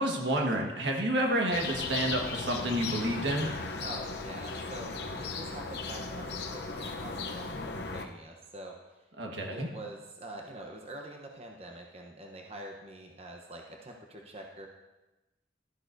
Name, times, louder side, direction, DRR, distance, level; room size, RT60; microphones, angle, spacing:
voice 1, 0.0-3.5 9.2-9.7, right 1 dB, 80° right, 1 dB, 1.5 m, -29 dB
sound 1, 1.5-8.0, left 4 dB, 65° left, 0.8 m, -37 dB
voice 2, 3.8-8.8 9.5-14.7, right 1 dB, 35° right, 1 dB, 0.9 m, -45 dB
12.5 x 10.5 x 2.7 m, 1.1 s
head